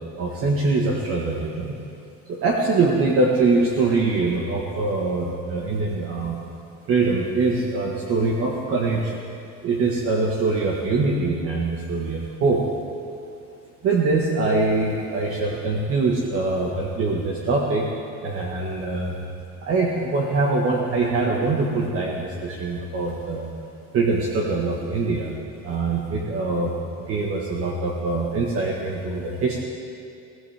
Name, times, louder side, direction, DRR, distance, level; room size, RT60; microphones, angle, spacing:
voice 1, 0.2-1.7 2.3-6.4 6.9-9.1 9.6-12.6 13.8-17.8 18.2-19.2 19.6-23.5 23.9-25.3 25.6-29.6, right 3 dB, 40° right, -2 dB, 1.6 m, -23 dB
22.0 x 15.5 x 3.5 m, 2.5 s
cardioid pair, 155°, 34 cm